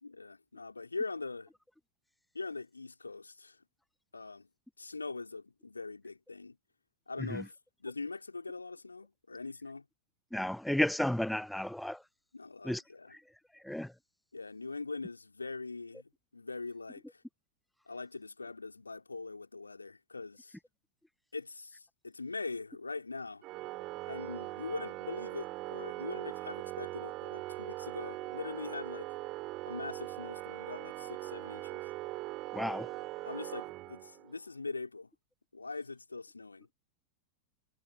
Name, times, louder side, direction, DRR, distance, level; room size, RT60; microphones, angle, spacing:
voice 1, 0.0-1.5 2.3-3.6 4.1-4.5 4.8-6.6 7.1-7.5 7.8-9.8 12.3-13.1 14.3-17.2 17.9-20.6 21.3-23.4 24.1-29.2 29.6-31.9 33.2-35.1 35.5-36.7, left 3 dB, 80° left, 3.2 m, -42 dB
voice 2, 10.3-12.0 12.6-12.8 13.1-13.2 13.6-13.9 32.5-32.9, left 1 dB, ahead, 0.4 m, -32 dB
Organ, 23.4-34.4, right 19 dB, 40° right, 6.7 m, -41 dB
figure-of-eight pair, 90°, 0 cm